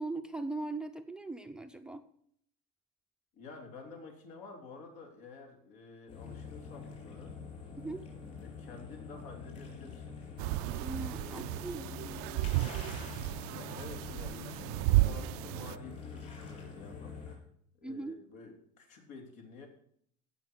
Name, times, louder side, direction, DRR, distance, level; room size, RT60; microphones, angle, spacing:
voice 1, 0.0-2.0 7.8-8.0 10.8-12.4 17.8-18.2, right 2 dB, 5° right, 6 dB, 0.5 m, -40 dB
voice 2, 3.3-7.3 8.4-10.2 11.1-11.7 13.5-17.3 17.8-19.7, left 4 dB, 75° left, 2 dB, 3.5 m, -50 dB
sound 1, 6.1-17.4, left 5 dB, 35° left, 4.9 m, -46 dB
sound 2, 10.4-15.7, right 18 dB, 80° right, 0.5 m, -33 dB
15.5 x 5.8 x 7.0 m, 0.66 s
cardioid pair, 155°, 19 cm